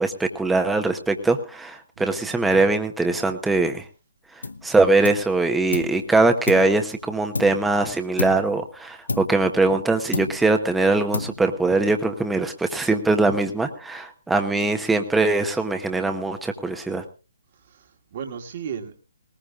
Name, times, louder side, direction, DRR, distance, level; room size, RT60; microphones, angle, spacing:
voice 1, 0.0-3.9 4.6-17.0, right 3 dB, 5° right, 5 dB, 1.0 m, -22 dB
sound 1, 4.4-4.7 5.0-6.0 6.5-7.8 8.2-8.6 9.1-9.8 10.1-10.6 11.1-11.7, left 3 dB, 75° left, 0.9 m, -31 dB
voice 2, 17.7-19.0, right 7 dB, 45° right, 3 dB, 1.8 m, -35 dB
19.5 x 19.0 x 2.5 m, 0.33 s
figure-of-eight pair, 140°, 0 cm